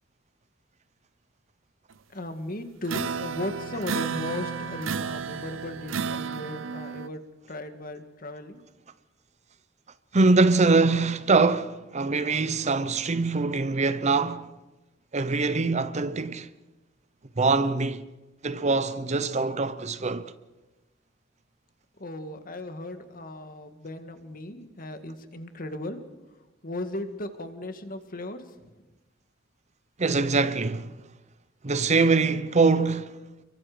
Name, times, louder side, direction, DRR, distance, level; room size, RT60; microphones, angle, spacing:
voice 1, 2.1-7.2 7.5-8.6 22.0-26.1 26.6-28.7, left 1 dB, 45° left, 1.9 m, -36 dB
sound 1, 2.9-7.1, right 6 dB, 90° right, 0.7 m, -32 dB
voice 2, 10.1-14.6 15.1-16.5 17.4-18.1 18.4-20.3 30.0-31.0 31.6-33.2, right 3 dB, 35° right, 0.8 m, -23 dB
29.5 x 23.0 x 5.1 m
head